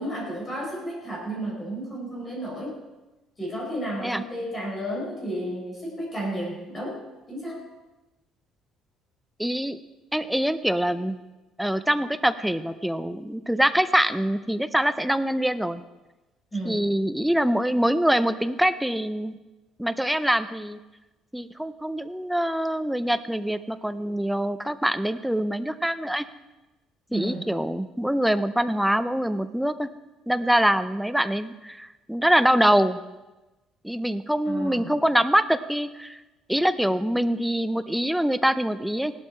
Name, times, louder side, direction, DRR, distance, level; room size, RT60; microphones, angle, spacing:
voice 1, 0.0-2.8 3.4-7.0 7.3-7.6 16.5-16.9 27.1-27.5 34.4-34.9, right 1 dB, 20° left, -3 dB, 4.7 m, -32 dB
voice 2, 9.4-9.8 10.1-11.2 11.6-15.8 16.6-19.4 19.8-20.8 21.3-26.3 27.1-29.9 30.3-33.0 33.8-36.2 36.5-39.1, equal, ahead, 11 dB, 0.4 m, -24 dB
17.5 x 12.0 x 4.4 m, 1.1 s
cardioid pair, 175°, 0 cm